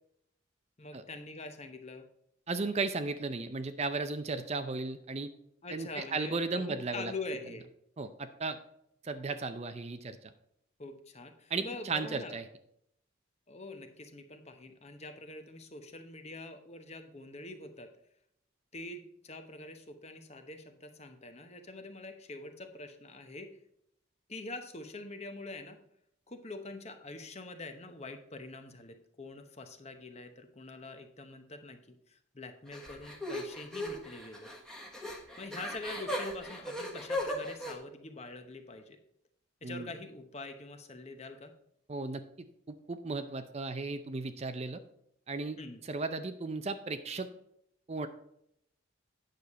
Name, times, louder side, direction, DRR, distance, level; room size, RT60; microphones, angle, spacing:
voice 1, 0.8-2.1 5.6-7.7 10.8-12.3 13.5-17.9 18.7-23.5 24.3-25.8 26.3-34.5 35.4-39.0 39.6-41.5 45.6-45.8, left 2 dB, 30° left, 7 dB, 0.9 m, -45 dB
voice 2, 2.5-5.3 5.7-7.1 8.0-8.6 9.0-10.3 11.5-12.4 39.6-39.9 41.9-42.2 42.7-44.8 45.3-45.6 45.8-47.3 47.9-48.1, right 3 dB, 30° right, 10 dB, 0.5 m, -35 dB
sound 1, 32.7-37.7, left 1 dB, 5° left, 1.2 m, -38 dB
9.2 x 6.6 x 4.2 m, 0.74 s
head